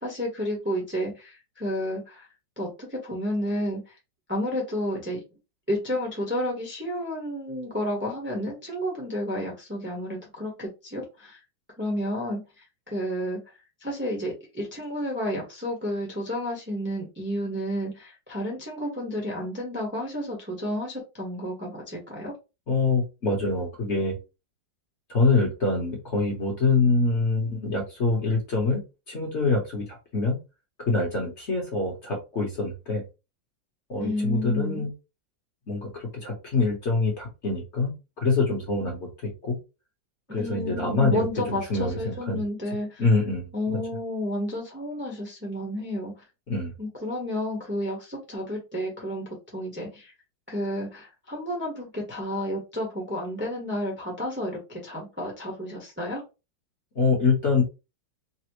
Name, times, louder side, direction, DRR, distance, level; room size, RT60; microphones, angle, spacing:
voice 1, 0.0-2.3 2.6-3.8 4.3-5.2 5.7-11.4 11.8-12.4 12.9-13.4 13.8-22.3 34.0-34.8 40.3-43.0 43.5-46.1 46.8-50.1 50.5-56.2, equal, 10° right, -2 dB, 0.6 m, -31 dB
voice 2, 22.7-24.1 25.1-28.8 29.1-29.8 30.1-30.4 30.9-33.0 33.9-34.9 35.7-37.9 38.2-39.5 40.3-42.4 43.0-43.8 46.5-46.7 57.0-57.6, left 3 dB, 45° left, 0 dB, 1.0 m, -25 dB
4.1 x 2.0 x 2.9 m, 0.27 s
omnidirectional pair, 2.0 m